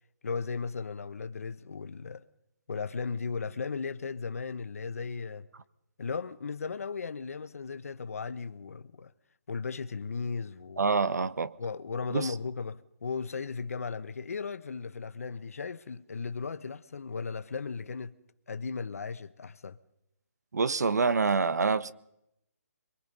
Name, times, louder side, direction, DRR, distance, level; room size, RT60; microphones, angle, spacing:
voice 1, 0.2-2.2 2.7-5.5 6.0-9.1 9.5-10.8 11.6-18.1 18.5-19.8, left 5 dB, 60° left, 1.2 m, -36 dB
voice 2, 10.8-11.5 12.1-12.3 20.5-21.9, right 4 dB, 80° right, 1.2 m, -26 dB
24.5 x 22.5 x 5.4 m
hypercardioid pair, 175°, 9 cm